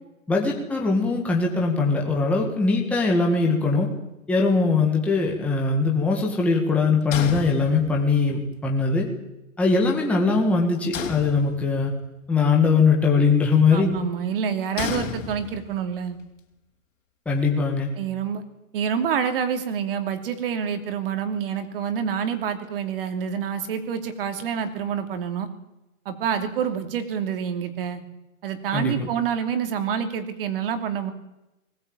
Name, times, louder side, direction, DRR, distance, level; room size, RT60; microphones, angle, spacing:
voice 1, 0.3-3.9 4.3-9.1 9.6-11.9 12.3-13.9 17.3-17.9 28.7-29.0, left 4 dB, 5° left, -1 dB, 1.8 m, -21 dB
sound 1, 7.1-8.2 10.9-12.0 14.8-15.9, left 8 dB, 60° left, 3.7 m, -32 dB
voice 2, 13.7-16.2 18.0-18.4 18.7-25.5 26.0-28.0 28.4-31.1, right 7 dB, 40° right, 8 dB, 2.8 m, -27 dB
20.5 x 18.0 x 8.9 m, 0.93 s
hypercardioid pair, 170°, 43 cm